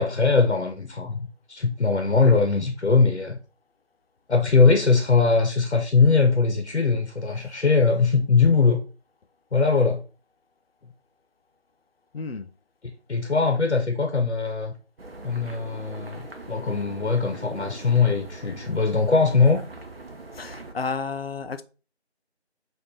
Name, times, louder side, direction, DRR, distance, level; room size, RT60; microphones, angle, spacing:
voice 1, 0.0-3.4 4.3-8.8 9.5-10.0 13.1-14.7 15.2-19.6, left 4 dB, 90° left, 0.8 m, -21 dB
voice 2, 12.1-12.5 20.3-21.6, left 4 dB, 60° left, 0.5 m, -31 dB
sound 1, 15.0-20.7, right 2 dB, 60° right, 0.8 m, -42 dB
4.7 x 2.5 x 3.6 m
figure-of-eight pair, 170°, 33 cm